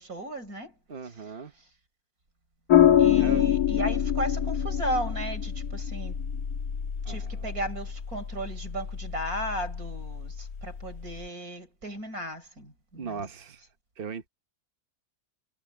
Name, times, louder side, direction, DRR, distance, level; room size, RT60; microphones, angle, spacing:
voice 1, 0.0-0.8 1.0-1.1 3.0-6.2 7.1-13.2, right 1 dB, 70° right, 5.6 m, -35 dB
voice 2, 0.9-1.5 2.8-3.5 7.0-7.5 12.9-13.6 14.0-14.3, right 6 dB, 40° right, 1.1 m, -39 dB
sound 1, 2.7-11.3, left 10 dB, 75° left, 2.0 m, -26 dB
omnidirectional pair, 1.6 m